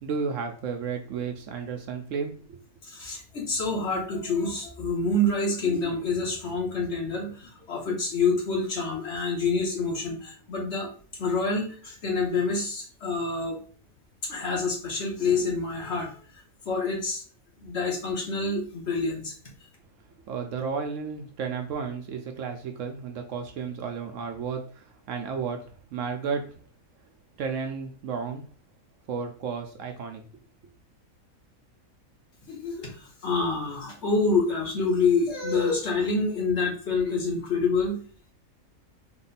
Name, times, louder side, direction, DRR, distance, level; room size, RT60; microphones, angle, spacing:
voice 1, 0.0-2.6 20.3-26.6 27.4-28.5 29.1-30.2, right 5 dB, 70° right, 4 dB, 0.9 m, -33 dB
voice 2, 2.8-10.9 11.2-13.6 14.2-16.1 16.6-17.2 17.6-19.3 32.5-38.0, left 3 dB, 55° left, -2 dB, 1.3 m, -27 dB
3.7 x 2.2 x 4.0 m, 0.41 s
omnidirectional pair, 1.5 m